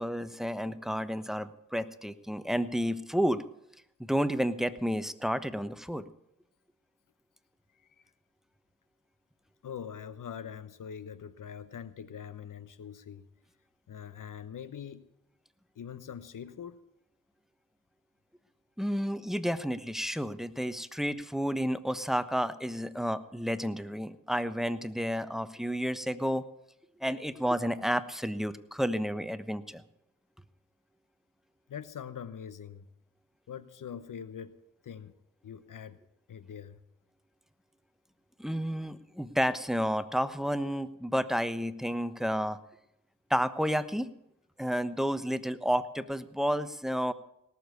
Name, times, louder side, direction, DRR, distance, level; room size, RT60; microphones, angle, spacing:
voice 1, 0.0-3.4 4.1-6.0 18.8-26.4 27.0-29.8 38.4-42.6 43.3-44.1 44.6-47.1, equal, ahead, 13 dB, 1.1 m, -31 dB
voice 2, 9.6-13.3 13.9-15.0 15.7-16.8 31.7-32.9 33.5-34.6 34.8-35.1 35.4-36.0 36.3-36.8, left 8 dB, 80° left, 14 dB, 1.0 m, -43 dB
18.0 x 7.2 x 8.3 m, 0.81 s
cardioid pair, 40°, 31 cm